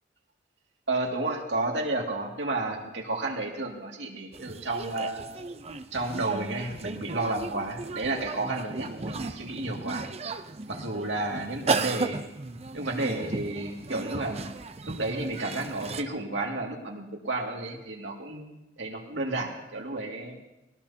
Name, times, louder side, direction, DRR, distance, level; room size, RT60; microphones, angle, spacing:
voice 1, 0.9-5.2 5.9-10.1 10.7-12.2 12.7-14.4 14.8-20.4, right 2 dB, 80° right, 0 dB, 2.4 m, -32 dB
sound 1, 4.3-16.0, right 4 dB, 35° right, 0.7 m, -35 dB
21.5 x 18.5 x 2.9 m, 0.97 s
head